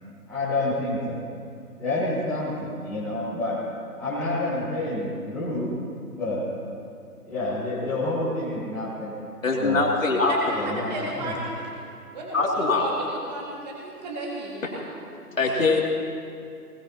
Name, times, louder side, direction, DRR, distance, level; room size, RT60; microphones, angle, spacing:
voice 1, 0.3-1.2 1.8-3.6 4.0-5.7 6.1-6.4 7.2-9.1 9.6-9.8 10.5-11.3, left 2 dB, 5° left, -14 dB, 1.4 m, -28 dB
voice 2, 9.4-10.5 12.3-12.8 14.6-14.7 15.4-15.8, left 3 dB, 55° left, -1 dB, 2.9 m, -22 dB
voice 3, 10.3-11.7 12.1-14.9 15.7-15.8, right 1 dB, 25° right, -4 dB, 2.1 m, -34 dB
20.5 x 20.0 x 2.9 m, 2.4 s
figure-of-eight pair, 150°, 47 cm